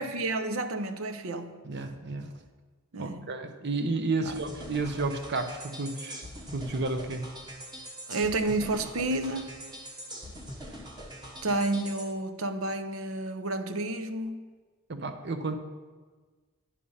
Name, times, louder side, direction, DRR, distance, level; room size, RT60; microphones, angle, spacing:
voice 1, 0.0-1.6 2.9-3.4 4.3-4.4 8.1-9.5 11.4-14.4, right 2 dB, 85° right, 9 dB, 0.7 m, -30 dB
voice 2, 1.6-2.3 3.0-6.3 6.5-7.3 14.9-15.6, right 3 dB, 55° right, 7 dB, 0.8 m, -32 dB
sound 1, 4.2-12.1, equal, 20° right, 1.2 m, -43 dB
10.0 x 5.0 x 5.6 m, 1.4 s
head